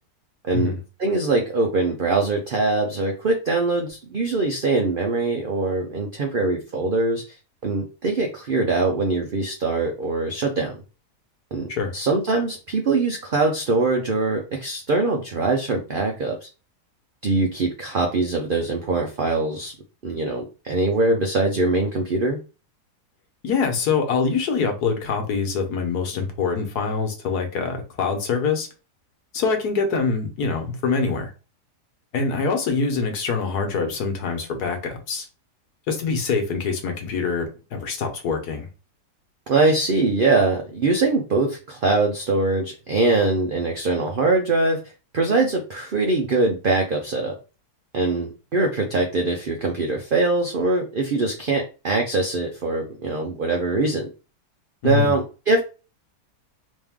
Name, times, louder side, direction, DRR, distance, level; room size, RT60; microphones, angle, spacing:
voice 1, 1.0-7.2 7.6-10.8 11.5-16.5 17.2-19.7 20.0-22.4 39.5-44.8 45.1-47.4 47.9-54.1 54.8-55.6, right 3 dB, 70° right, 0.5 m, -22 dB
voice 2, 23.4-28.7 29.3-31.3 32.1-35.3 35.9-38.7 54.8-55.1, left 5 dB, 75° left, 1.5 m, -24 dB
3.4 x 3.1 x 3.6 m
omnidirectional pair, 1.7 m